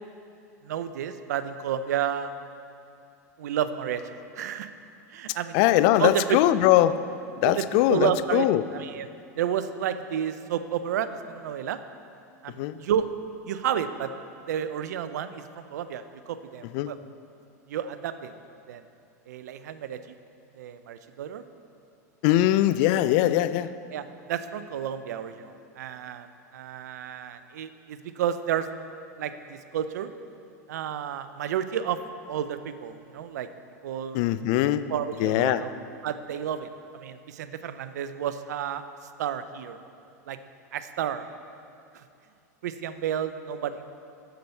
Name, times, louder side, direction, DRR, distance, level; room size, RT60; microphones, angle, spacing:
voice 1, 0.6-2.3 3.4-4.7 5.1-5.6 6.0-6.4 7.4-9.1 9.4-11.8 12.4-13.1 13.4-14.1 14.5-17.0 17.7-18.3 18.7-18.8 19.3-20.2 20.6-21.4 23.9-28.7 29.2-30.1 30.7-32.0 32.3-33.5 33.8-34.2 34.9-35.7 36.0-38.8 39.2-39.8 40.3-40.4 40.7-41.3 41.9-42.0 42.6-43.9, right 9 dB, 75° right, 11 dB, 0.5 m, -31 dB
voice 2, 5.5-7.0 7.4-8.6 12.6-12.8 16.7-16.9 22.2-23.7 34.1-34.8 35.2-35.6, left 13 dB, 55° left, 14 dB, 0.4 m, -21 dB
7.5 x 7.0 x 5.5 m, 2.6 s
hypercardioid pair, 110°, 9 cm